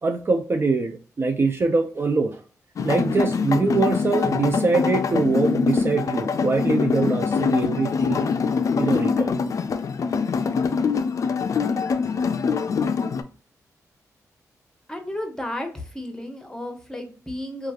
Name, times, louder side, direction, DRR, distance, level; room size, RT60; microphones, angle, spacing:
voice 1, 0.0-2.4 2.8-8.2 8.8-9.3, right 3 dB, 40° right, 5 dB, 0.4 m, -23 dB
sound 1, 2.8-13.2, left 5 dB, 55° left, 0.3 m, -24 dB
voice 2, 14.9-17.7, left 1 dB, 10° left, 5 dB, 0.9 m, -33 dB
3.1 x 2.3 x 2.3 m, 0.39 s
cardioid pair, 60°, 6 cm